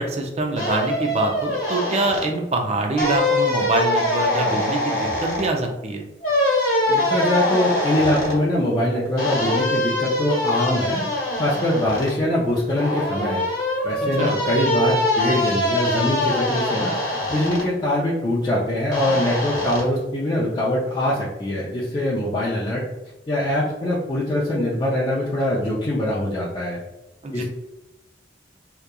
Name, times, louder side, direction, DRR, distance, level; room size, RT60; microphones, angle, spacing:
voice 1, 0.0-6.0 14.2-14.4 27.2-27.4, right 2 dB, 35° right, 3 dB, 0.4 m, -24 dB
sound 1, 0.6-2.3 3.0-5.5 6.2-8.4 9.2-12.1 12.8-17.6 18.9-19.8, left 1 dB, 50° left, 1.1 m, -23 dB
voice 2, 6.9-11.0 11.4-13.4 13.8-17.0 17.3-22.8 23.3-26.8 27.3-27.4, left 1 dB, 25° left, -7 dB, 0.4 m, -23 dB
2.8 x 2.3 x 2.3 m, 0.95 s
head